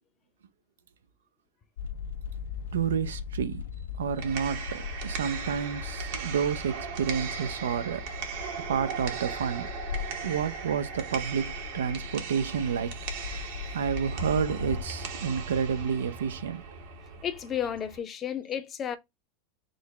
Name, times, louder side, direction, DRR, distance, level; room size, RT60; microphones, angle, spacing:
sound 1, 1.8-14.8, left 7 dB, 75° left, 0.4 m, -39 dB
voice 1, 2.7-3.6 4.0-8.0 8.7-9.7 10.2-12.9 13.3-13.5 13.7-16.6, right 7 dB, 80° right, 0.5 m, -30 dB
sound 2, 4.0-18.0, right 5 dB, 65° right, 1.1 m, -38 dB
voice 2, 17.2-19.0, left 9 dB, 35° left, 0.6 m, -32 dB
3.8 x 2.0 x 3.2 m
hypercardioid pair, 90°, 0 cm